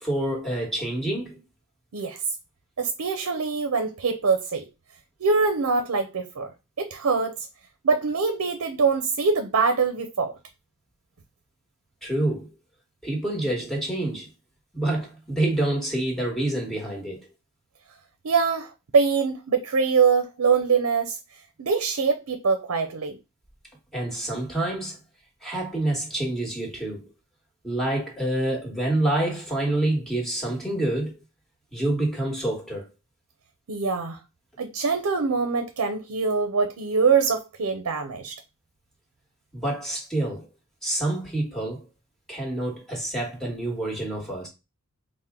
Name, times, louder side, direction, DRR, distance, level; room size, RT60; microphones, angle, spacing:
voice 1, 0.0-1.4 12.0-12.5 13.0-14.3 14.7-17.2 23.9-25.0 25.4-27.1 27.6-31.2 31.7-32.8 39.5-40.5 40.8-41.9 42.3-44.5, right 1 dB, ahead, 1.4 m, -27 dB
voice 2, 2.8-4.6 5.2-6.5 6.8-7.5 7.8-10.3 18.2-21.2 21.6-23.2 33.7-34.2 34.6-38.4, right 5 dB, 85° right, 0.6 m, -23 dB
4.3 x 2.1 x 3.6 m
head